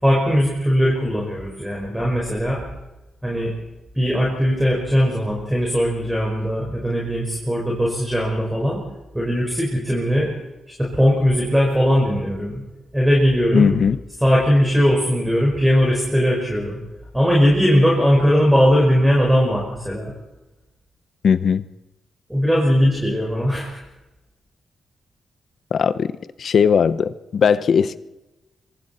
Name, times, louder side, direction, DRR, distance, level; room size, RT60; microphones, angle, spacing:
voice 1, 0.0-2.6 3.2-3.5 4.0-8.8 9.1-10.3 10.8-12.6 12.9-13.7 14.2-16.8 17.1-20.1 22.3-23.8, equal, 5° right, -2 dB, 5.3 m, -19 dB
voice 2, 13.5-14.0 21.2-21.6 25.7-26.1 26.4-28.0, left 7 dB, 60° left, 14 dB, 0.8 m, -18 dB
26.5 x 23.5 x 4.4 m, 1.1 s
cardioid pair, 125°, 0 cm